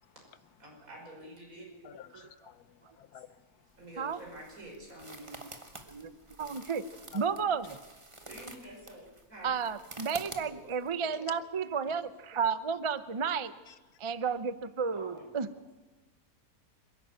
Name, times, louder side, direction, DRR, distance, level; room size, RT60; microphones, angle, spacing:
voice 1, 0.6-1.7 2.1-2.2 3.8-5.3 6.4-6.6 8.2-9.5 10.4-10.6 11.2-11.3 14.8-15.2, right 1 dB, 65° right, 6.4 m, -48 dB
voice 2, 1.8-3.4 7.1-7.5 13.7-13.8, left 10 dB, 85° left, 1.4 m, -51 dB
sound 1, 3.7-10.9, right 2 dB, 20° right, 1.8 m, -49 dB
voice 3, 5.1-5.5 5.9-6.1 6.4-6.8 7.1-7.8 9.4-13.5 14.0-15.5, right 6 dB, 40° right, 0.4 m, -32 dB
26.0 x 11.5 x 9.0 m
omnidirectional pair, 1.6 m